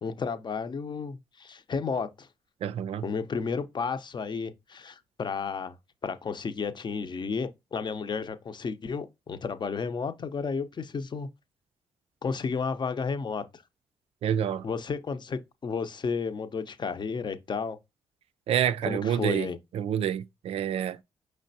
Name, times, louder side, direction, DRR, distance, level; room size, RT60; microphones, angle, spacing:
voice 1, 0.0-2.3 3.0-5.8 6.0-11.3 12.2-13.6 14.6-17.8 18.9-19.6, left 5 dB, 45° left, 0.7 m, -32 dB
voice 2, 2.6-3.1 14.2-14.6 18.5-21.0, right 9 dB, 65° right, 0.4 m, -28 dB
5.1 x 3.2 x 2.7 m
supercardioid pair, 50°, 11 cm